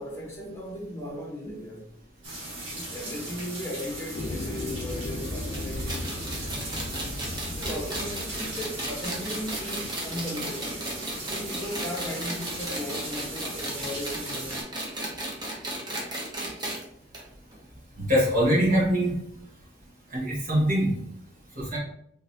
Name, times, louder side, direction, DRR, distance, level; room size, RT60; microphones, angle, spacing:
voice 1, 0.0-1.8 2.7-6.1 7.4-10.9 11.3-14.7, equal, 15° left, 1.1 m, -37 dB
sound 1, 2.2-14.6, right 2 dB, 85° right, 1.6 m, -38 dB
sound 2, 4.1-9.2, left 2 dB, 45° left, 0.5 m, -36 dB
sound 3, 5.5-16.8 17.1-17.2 17.5-17.6 18.5-18.6, right 1 dB, 25° right, 1.0 m, -35 dB
voice 2, 18.0-19.1 20.1-20.9 21.6-21.8, equal, 50° right, 1.6 m, -23 dB
3.9 x 3.7 x 2.7 m
head